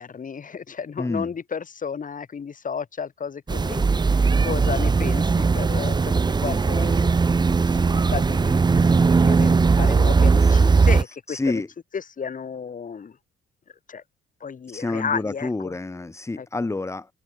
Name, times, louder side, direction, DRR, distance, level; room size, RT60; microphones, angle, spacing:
voice 1, 0.0-11.6 11.9-13.2 13.9-14.0 14.4-15.7 16.4-16.5, left 6 dB, 40° left, 3.4 m, -33 dB
voice 2, 1.0-1.3 10.7-10.9 11.3-11.7 14.7-17.1, left 2 dB, 15° left, 1.0 m, -28 dB
sound 1, 3.5-11.0, right 4 dB, 20° right, 0.6 m, -19 dB
cardioid pair, 90°, 20 cm